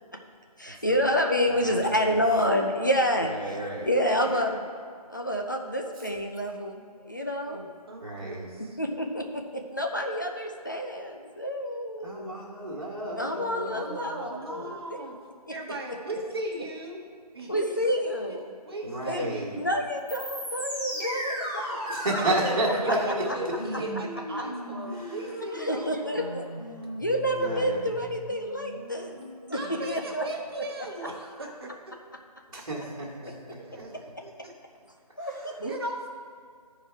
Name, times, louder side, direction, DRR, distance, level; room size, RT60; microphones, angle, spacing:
voice 1, 0.6-3.5 3.9-4.6 5.1-7.7 8.5-12.4 13.2-14.8 17.5-18.5 19.0-19.3 19.5-21.3 24.3-24.4 25.5-26.5 26.9-29.2 29.5-30.2 33.3-33.4 35.2-35.8, equal, 30° left, 2 dB, 0.5 m, -28 dB
voice 2, 3.2-3.9 8.0-8.5 12.0-14.1 14.5-14.6 18.8-19.6 21.9-23.2 24.9-25.2 27.3-27.8 32.5-33.8 35.2-35.5, right 1 dB, 55° right, -5 dB, 1.6 m, -32 dB
voice 3, 4.2-4.5 7.5-8.8 13.7-15.2 15.5-17.0 17.3-17.7 18.6-19.6 20.9-26.4 29.5-32.0 33.2-34.5 35.6-36.1, right 2 dB, 40° right, 0 dB, 1.2 m, -38 dB
sound 1, 20.0-30.0, equal, 10° left, 0.9 m, -36 dB
12.5 x 4.6 x 4.4 m, 2.1 s
hypercardioid pair, 180°, 20 cm